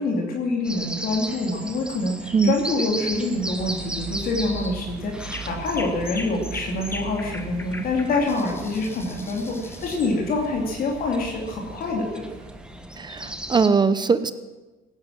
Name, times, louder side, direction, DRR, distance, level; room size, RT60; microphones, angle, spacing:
voice 1, 0.0-12.2, left 2 dB, 60° left, 0 dB, 2.8 m, -26 dB
sound 1, 0.6-13.7, right 1 dB, 5° right, 1.4 m, -37 dB
sound 2, 3.1-13.6, right 6 dB, 65° right, 2.6 m, -41 dB
sound 3, 3.7-4.0 4.4-4.8 5.2-10.1, left 2 dB, 15° left, 1.5 m, -39 dB
voice 2, 13.0-14.3, right 5 dB, 25° right, 13 dB, 0.7 m, -20 dB
16.5 x 10.5 x 7.6 m, 1.2 s
cardioid pair, 110°, 17 cm